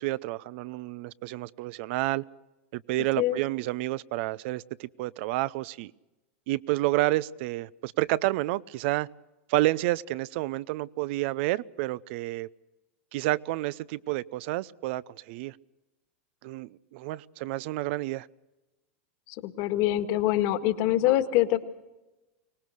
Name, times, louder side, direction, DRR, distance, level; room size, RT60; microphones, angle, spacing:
voice 1, 0.0-2.2 2.7-5.9 6.5-9.1 9.5-12.5 13.1-15.6 16.4-18.3, right 18 dB, 65° right, 0.6 m, -29 dB
voice 2, 19.3-21.6, left 14 dB, 55° left, 1.8 m, -25 dB
24.0 x 19.0 x 6.4 m
supercardioid pair, 120°, 7 cm